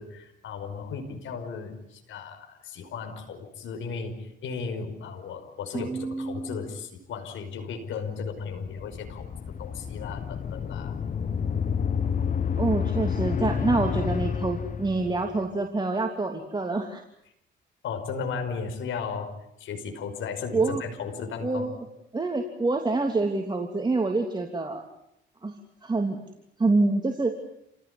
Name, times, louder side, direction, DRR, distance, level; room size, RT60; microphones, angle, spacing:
voice 1, 0.0-9.3 9.6-10.9 17.8-19.3 19.6-21.7, left 5 dB, 75° left, 5 dB, 5.5 m, -35 dB
voice 2, 5.7-6.6 12.6-17.0 20.5-20.8 21.4-21.8 22.1-24.8 25.4-25.5 25.8-26.2 26.6-27.3, right 3 dB, 20° right, 3 dB, 3.0 m, -26 dB
sound 1, 8.6-15.4, left 7 dB, 40° left, 1.1 m, -29 dB
28.5 x 17.5 x 9.7 m, 0.78 s
cardioid pair, 90°, 20 cm